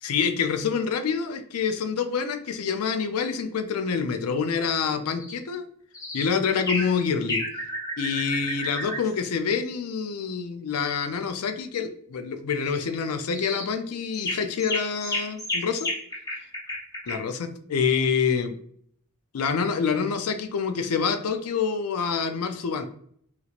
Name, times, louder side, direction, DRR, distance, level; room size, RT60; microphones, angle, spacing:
voice 1, 0.0-5.7 6.1-7.4 8.0-15.9 17.1-18.5 19.3-22.9, left 6 dB, 90° left, 8 dB, 0.4 m, -27 dB
sound 1, 5.2-5.4 5.9-6.3 6.7-6.9 7.3-9.1 12.6-12.8 13.3-13.7 14.1-17.2, left 1 dB, 15° left, 0.5 m, -32 dB
2.9 x 2.9 x 2.4 m, 0.62 s
head